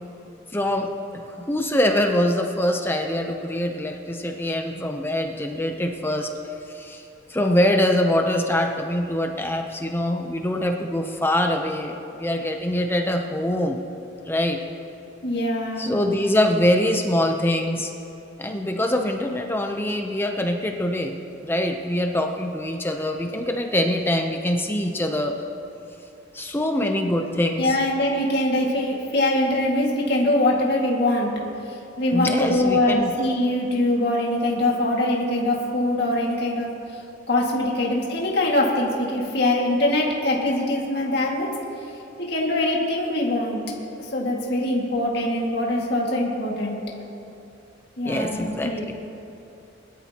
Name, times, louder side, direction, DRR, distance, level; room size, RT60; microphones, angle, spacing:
voice 1, 0.5-6.3 6.7-7.0 7.3-13.8 14.3-14.6 15.8-17.9 18.4-21.2 21.4-25.3 26.3-27.8 32.1-33.1 48.0-48.9, left 1 dB, 10° left, 3 dB, 0.6 m, -24 dB
voice 2, 15.2-16.0 27.6-31.3 31.6-37.0 37.3-41.5 42.2-43.6 44.0-46.8 48.0-48.9, left 1 dB, 55° left, -2 dB, 2.0 m, -23 dB
21.5 x 12.5 x 2.9 m, 2.8 s
head